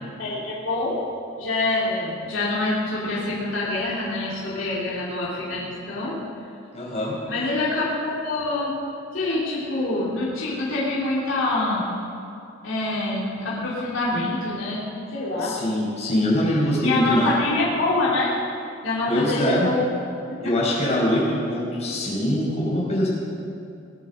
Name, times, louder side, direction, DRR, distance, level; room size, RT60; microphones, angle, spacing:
voice 1, 0.2-1.0 1.4-6.2 7.3-8.7 9.1-11.8 12.6-14.8 15.1-15.6 16.5-18.3 18.8-19.8 20.4-20.5, left 2 dB, 65° left, -7 dB, 3.5 m, -25 dB
voice 2, 6.7-7.2 15.4-17.3 19.1-19.7 20.4-23.1, left 1 dB, 35° left, -6 dB, 4.8 m, -23 dB
20.0 x 8.9 x 6.7 m, 2.6 s
head